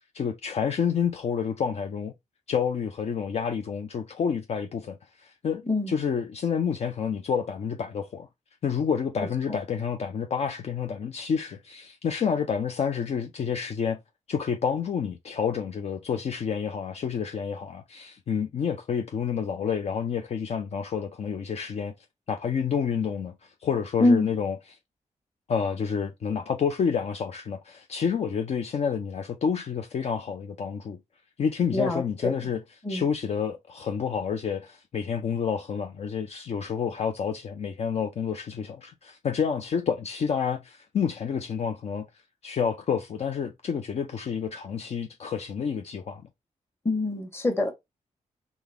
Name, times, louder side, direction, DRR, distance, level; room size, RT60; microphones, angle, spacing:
voice 1, 0.1-2.1 2.5-8.3 8.6-14.0 14.3-21.9 22.3-23.3 23.6-24.8 25.5-31.0 31.4-32.6 32.9-42.0 42.4-46.3, left 7 dB, 55° left, 0.6 m, -29 dB
voice 2, 31.7-32.3 32.8-33.0 46.8-47.7, left 2 dB, 20° left, 1.4 m, -24 dB
3.9 x 3.5 x 3.6 m
wide cardioid pair, 125°, 13 cm